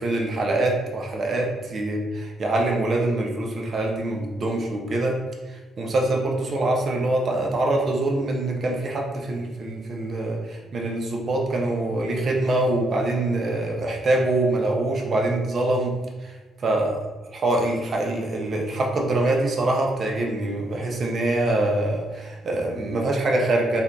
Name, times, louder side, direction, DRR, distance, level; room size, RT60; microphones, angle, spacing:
voice 1, 0.0-5.2 5.5-15.9 16.2-16.3 16.6-23.8, right 2 dB, 50° right, 1 dB, 0.6 m, -24 dB
2.6 x 2.3 x 3.4 m, 1.2 s
cardioid pair, 90°, 0 cm